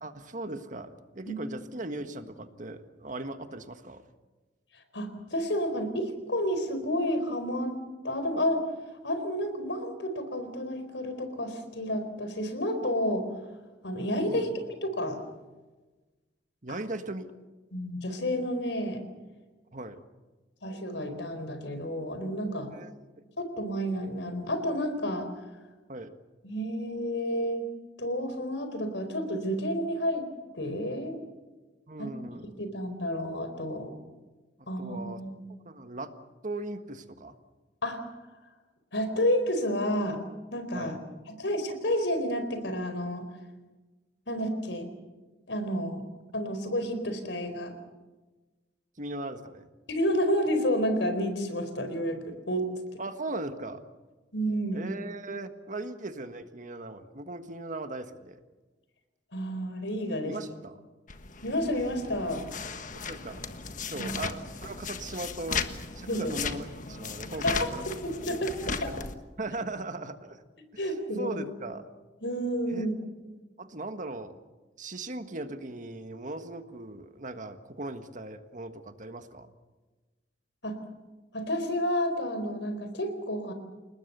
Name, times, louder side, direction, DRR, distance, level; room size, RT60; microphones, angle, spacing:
voice 1, 0.0-4.0 14.3-14.6 16.6-17.3 19.7-20.0 22.7-23.0 25.9-26.1 31.9-32.5 34.8-35.2 35.6-36.1 36.4-37.3 40.7-40.9 49.0-49.7 53.0-53.8 54.7-58.4 60.2-60.7 62.9-63.4 63.9-65.7 65.9-67.8 68.3-68.4 68.6-69.1 69.4-70.4 70.7-71.9 72.7-72.8 73.6-74.3 74.8-79.5, right 2 dB, 45° right, 8 dB, 1.6 m, -38 dB
voice 2, 4.9-7.8 8.0-8.6 9.0-13.2 13.8-15.2 16.7-16.8 17.7-19.0 20.6-22.7 23.4-25.3 26.4-27.7 28.0-30.3 30.5-31.2 32.0-32.1 32.6-33.9 34.7-35.5 37.8-38.0 38.9-40.2 40.5-41.0 41.4-43.2 44.3-44.9 45.5-46.0 46.3-47.7 49.9-52.6 54.3-54.9 59.3-60.4 61.4-62.4 63.9-64.1 66.1-66.4 67.4-67.7 68.2-68.9 70.8-71.4 72.2-72.9 80.6-80.8 81.3-83.5, equal, 80° left, 8 dB, 4.4 m, -30 dB
sound 1, 61.1-69.2, left 5 dB, 45° left, 1.4 m, -36 dB
29.5 x 19.5 x 6.9 m, 1.2 s
head